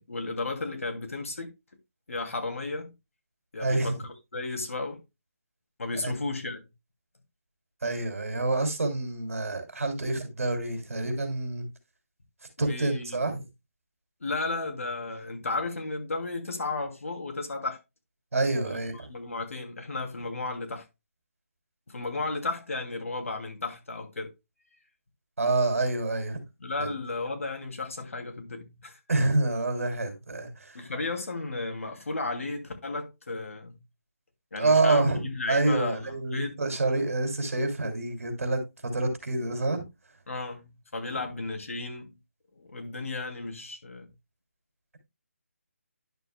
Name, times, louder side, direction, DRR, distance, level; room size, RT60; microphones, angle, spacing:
voice 1, 0.0-1.5 2.1-2.9 3.5-4.0 4.3-5.0 5.8-6.6 12.6-13.3 14.2-17.8 18.6-20.9 21.9-24.3 26.6-29.0 30.7-33.8 34.5-36.6 40.3-42.2 42.5-44.1, left 3 dB, 65° left, 2.5 m, -34 dB
voice 2, 3.6-3.9 6.0-6.1 7.8-11.7 12.6-13.4 18.3-19.1 25.4-26.4 26.8-27.0 29.1-30.8 34.6-39.8, right 2 dB, 65° right, 2.9 m, -27 dB
11.0 x 6.9 x 2.2 m
hypercardioid pair, 175°, 8 cm